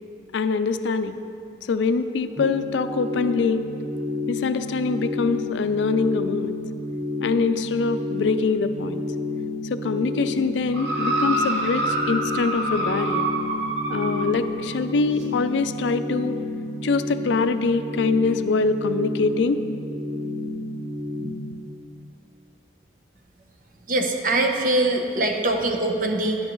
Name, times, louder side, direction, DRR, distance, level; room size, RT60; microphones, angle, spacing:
voice 1, 0.3-1.2 1.6-3.6 4.3-6.6 7.2-9.0 9.7-13.2 13.9-16.3 16.8-19.6, left 4 dB, 85° left, 11 dB, 0.4 m, -24 dB
sound 1, 2.4-21.3, left 2 dB, 30° right, 2.2 m, -30 dB
sound 2, 10.7-14.4 15.2-15.3, right 2 dB, 75° right, 1.1 m, -26 dB
voice 2, 23.9-26.4, right 2 dB, 50° right, 3 dB, 0.8 m, -22 dB
11.0 x 10.0 x 3.1 m, 2.6 s
head